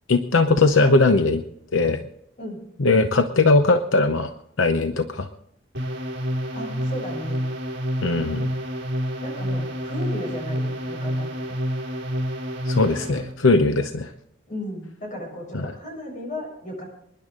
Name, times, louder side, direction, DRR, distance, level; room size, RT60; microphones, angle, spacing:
voice 1, 0.1-1.4 1.7-2.0 2.8-4.3 4.6-5.3 8.0-8.4 12.7-14.1 15.5-15.7, left 3 dB, 80° left, 8 dB, 0.8 m, -19 dB
sound 1, 5.7-13.3, equal, 55° right, 4.3 m, -28 dB
voice 2, 6.5-7.4 9.2-11.3 14.5-16.9, left 1 dB, 40° left, 0 dB, 6.9 m, -34 dB
27.5 x 10.5 x 3.7 m, 0.77 s
head